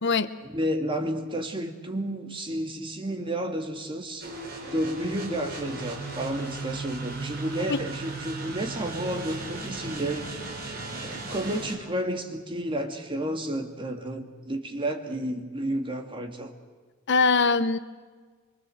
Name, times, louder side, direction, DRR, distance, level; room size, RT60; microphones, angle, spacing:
voice 1, 0.4-4.3 4.6-10.3 11.0-16.5, right 1 dB, 25° right, 2.4 m, -31 dB
sound 1, 4.2-11.8, right 3 dB, 50° right, 4.6 m, -36 dB
voice 2, 17.1-17.8, left 4 dB, 60° left, 0.9 m, -22 dB
25.0 x 24.0 x 7.9 m
head